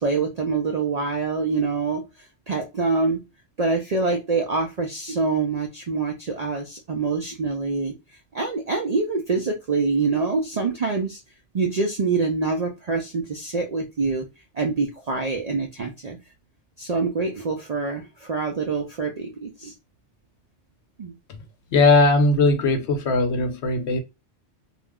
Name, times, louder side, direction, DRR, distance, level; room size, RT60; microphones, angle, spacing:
voice 1, 0.0-2.0 2.5-3.2 3.6-7.9 8.3-11.2 11.5-14.3 14.5-16.2 16.8-19.7 21.0-21.2, right 4 dB, 60° right, 0.4 m, -25 dB
voice 2, 21.7-24.0, left 2 dB, 70° left, 0.9 m, -19 dB
2.4 x 2.0 x 3.5 m
omnidirectional pair, 1.2 m